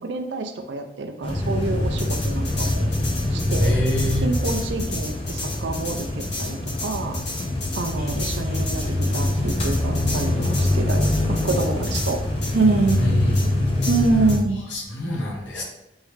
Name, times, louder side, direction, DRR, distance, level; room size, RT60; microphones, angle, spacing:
voice 1, 0.0-2.9 3.3-3.7 4.2-7.2 7.8-12.2 12.5-13.2 13.9-14.6, right 3 dB, 70° right, 6 dB, 0.5 m, -26 dB
sound 1, 1.2-14.4, left 1 dB, 30° left, 0.6 m, -24 dB
sound 2, 2.0-12.2 12.4-12.5 12.9-13.0 13.3-13.5 13.8-14.4, left 2 dB, 70° left, 1.4 m, -34 dB
voice 2, 3.6-4.3 13.0-13.6 14.7-15.6, left 1 dB, 90° left, -1 dB, 1.0 m, -26 dB
3.6 x 3.1 x 3.2 m, 0.92 s
head